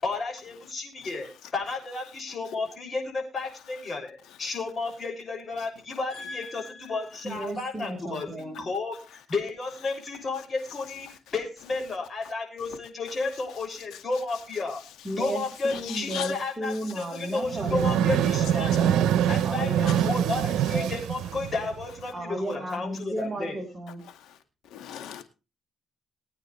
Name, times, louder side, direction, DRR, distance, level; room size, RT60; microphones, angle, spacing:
voice 1, 0.0-14.8 15.2-18.7 19.3-23.5, left 3 dB, 40° left, 6.8 m, -32 dB
voice 2, 6.1-8.7 15.0-20.3 22.1-24.0, right 1 dB, 15° right, 5.0 m, -35 dB
voice 3, 15.7-16.3 24.1-24.4 24.7-25.2, left 10 dB, 85° left, 2.0 m, -38 dB
sound 1, 17.4-22.0, right 10 dB, 85° right, 0.9 m, -25 dB
22.0 x 9.0 x 3.3 m
cardioid pair, 90°, 0 cm